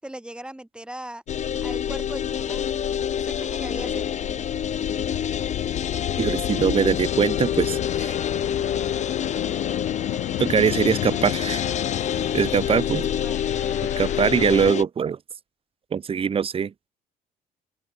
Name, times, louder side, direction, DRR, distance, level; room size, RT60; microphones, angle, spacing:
voice 1, 0.0-1.2 1.6-2.7 3.2-4.1 12.7-13.5, right 1 dB, 5° right, 7.0 m, -39 dB
sound 1, 1.3-14.7, left 17 dB, 75° left, 0.7 m, -32 dB
sound 2, 1.3-14.8, left 8 dB, 45° left, 1.7 m, -28 dB
voice 2, 6.2-8.2 10.4-11.7 12.3-13.1 14.0-15.2 15.9-16.7, right 7 dB, 35° right, 0.9 m, -22 dB
open air
cardioid pair, 110°, 17 cm